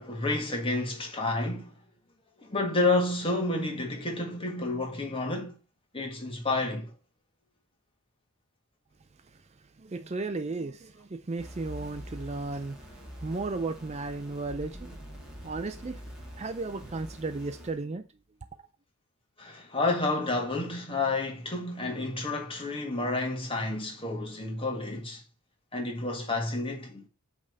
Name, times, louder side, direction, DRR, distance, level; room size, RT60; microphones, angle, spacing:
voice 1, 0.0-1.8 2.4-5.6 5.9-6.9 19.4-25.2 25.7-27.1, left 2 dB, 25° left, 1.7 m, -30 dB
voice 2, 9.8-15.1 15.4-16.0 16.4-18.1, right 3 dB, 30° right, 0.4 m, -35 dB
sound 1, 11.4-17.7, equal, 5° right, 2.1 m, -45 dB
8.7 x 3.6 x 6.6 m
head